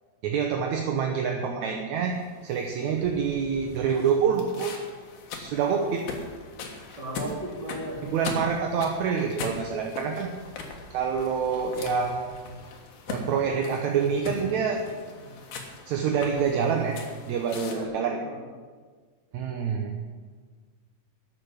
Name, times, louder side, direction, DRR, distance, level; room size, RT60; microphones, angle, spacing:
voice 1, 0.2-2.2 2.4-4.8 5.4-6.1 8.0-10.3 10.9-12.3 13.1-14.8 15.9-17.0 17.3-18.2 19.3-19.9, right 6 dB, 70° right, 2 dB, 2.0 m, -26 dB
sound 1, 2.1-17.8, left 4 dB, 70° left, 3.0 m, -41 dB
voice 2, 7.0-8.0 15.2-15.4 17.6-18.4, right 1 dB, 30° right, -4 dB, 3.8 m, -37 dB
11.5 x 7.0 x 9.7 m, 1.5 s
omnidirectional pair, 4.1 m